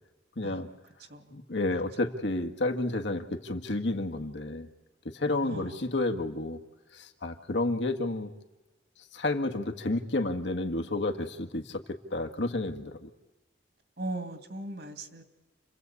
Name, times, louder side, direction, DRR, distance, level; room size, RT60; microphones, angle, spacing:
voice 1, 0.3-0.7 1.3-4.7 5.0-6.6 6.9-8.3 9.1-13.1, left 2 dB, 85° left, 4 dB, 1.8 m, -31 dB
voice 2, 5.4-5.9 14.0-15.2, right 2 dB, 65° right, 8 dB, 2.4 m, -39 dB
29.5 x 23.5 x 8.5 m, 1.2 s
head